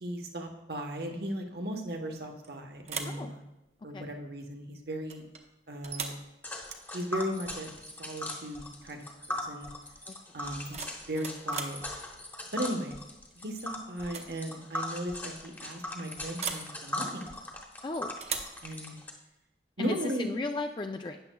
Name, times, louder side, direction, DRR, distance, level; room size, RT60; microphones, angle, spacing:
voice 1, 0.0-3.4 3.8-5.2 5.7-6.1 6.9-7.7 8.0-9.7 10.3-10.8 11.1-12.0 12.5-13.0 13.4-17.3 18.6-18.9 19.8-20.3, right 1 dB, 65° right, 4 dB, 1.1 m, -37 dB
sound 1, 2.2-2.5 2.8-3.3 5.1-5.5 5.8-6.3 8.1-8.3 8.6-9.0 10.4-11.8 13.3-13.6 14.0-14.3 14.6-14.7 16.4-16.7 18.2-18.6, right 6 dB, 40° right, 0.8 m, -38 dB
Tick, 6.4-19.1, left 1 dB, 10° left, 0.9 m, -39 dB
voice 2, 17.8-18.1 19.8-21.2, left 3 dB, 25° left, 5 dB, 0.3 m, -35 dB
12.5 x 9.1 x 2.3 m, 0.94 s
head